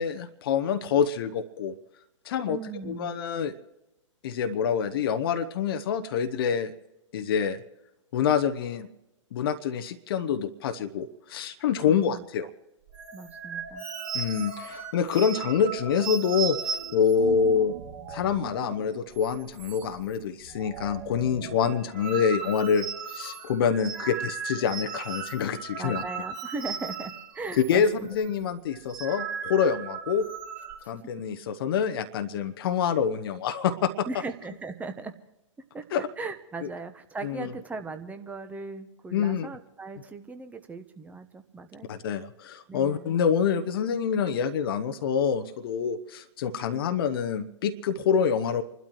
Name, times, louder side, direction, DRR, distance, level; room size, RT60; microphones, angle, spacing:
voice 1, 0.0-1.7 2.2-2.6 2.8-3.5 4.2-6.7 7.1-7.6 8.1-8.9 9.3-12.5 14.1-16.6 16.9-17.8 18.1-26.0 27.7-30.2 30.9-34.1 35.9-36.0 37.2-37.5 39.1-39.5 41.9-48.6, left 7 dB, 45° left, 8 dB, 1.0 m, -26 dB
voice 2, 2.5-3.1 11.8-12.2 13.1-13.8 25.8-28.1 30.9-31.0 34.1-35.1 35.7-41.9 42.7-43.2, right 3 dB, 10° right, 7 dB, 1.1 m, -38 dB
sound 1, 12.9-18.9 19.2-19.3 19.6-20.1 20.4-27.8 28.0-28.3 28.7-30.7, right 6 dB, 40° right, 3.7 m, -37 dB
29.5 x 12.5 x 3.1 m, 0.96 s
figure-of-eight pair, 115°, 16 cm